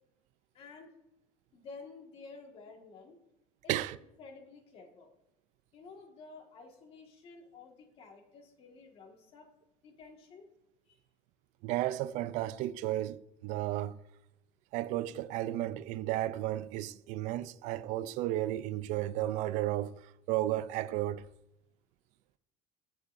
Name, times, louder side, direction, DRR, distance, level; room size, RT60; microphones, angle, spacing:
voice 1, 0.5-0.9 1.5-3.2 3.6-3.7 4.2-5.1 5.7-9.5 9.8-10.5 10.8-11.0, left 4 dB, 50° left, 1.7 m, -52 dB
voice 2, 11.6-14.0 14.7-19.9 20.3-21.3, right 14 dB, 75° right, 0.4 m, -33 dB
15.0 x 5.7 x 2.6 m
cardioid pair, 140°, 12 cm